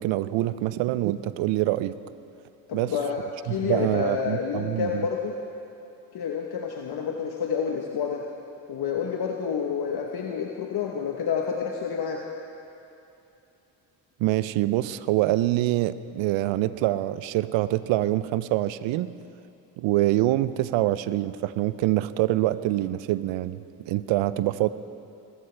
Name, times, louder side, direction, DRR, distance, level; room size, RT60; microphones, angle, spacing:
voice 1, 0.0-1.9 2.7-2.9 3.5-5.1 14.2-19.1 19.8-24.7, right 15 dB, 75° right, 16 dB, 0.6 m, -25 dB
voice 2, 2.7-5.4 6.1-8.2 8.7-12.2, left 6 dB, 55° left, 1 dB, 1.1 m, -29 dB
19.5 x 14.0 x 3.3 m, 2.7 s
supercardioid pair, 55°, 46 cm